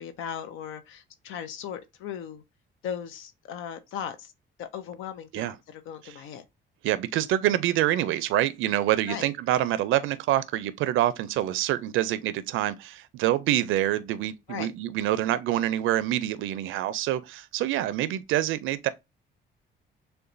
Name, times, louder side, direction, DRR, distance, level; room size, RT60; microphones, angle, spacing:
voice 1, 0.0-2.4 2.8-4.3 4.6-6.4 9.1-9.3 14.5-14.7, left 8 dB, 90° left, 0.5 m, -37 dB
voice 2, 6.8-18.9, right 13 dB, 85° right, 0.4 m, -26 dB
6.6 x 2.2 x 2.5 m
cardioid pair, 90°, 20 cm